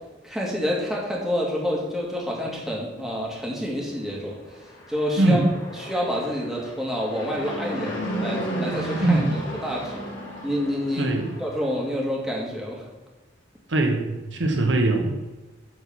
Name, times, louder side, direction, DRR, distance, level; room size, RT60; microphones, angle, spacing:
voice 1, 0.2-4.6 4.9-5.4 5.8-9.2 9.6-10.0 10.4-12.8, equal, ahead, -4 dB, 2.3 m, -28 dB
Fixed-wing aircraft airplane, 4.5-11.9, equal, 85° left, 2.6 m, -34 dB
voice 2, 5.2-5.5 9.0-9.4 11.0-11.3 13.7-15.3, right 2 dB, 80° right, 3 dB, 1.3 m, -21 dB
8.9 x 4.6 x 7.1 m, 1.2 s
head